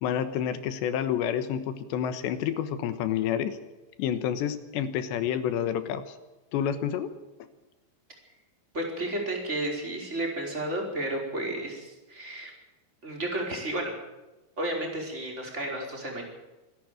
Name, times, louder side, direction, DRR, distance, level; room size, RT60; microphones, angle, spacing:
voice 1, 0.0-3.6 4.0-6.2 6.5-7.1, left 9 dB, 80° left, 11 dB, 3.4 m, -29 dB
voice 2, 8.7-12.5 13.0-13.9 14.6-16.3, right 1 dB, 15° right, 0 dB, 4.8 m, -32 dB
25.0 x 11.5 x 9.1 m, 1.1 s
omnidirectional pair, 5.1 m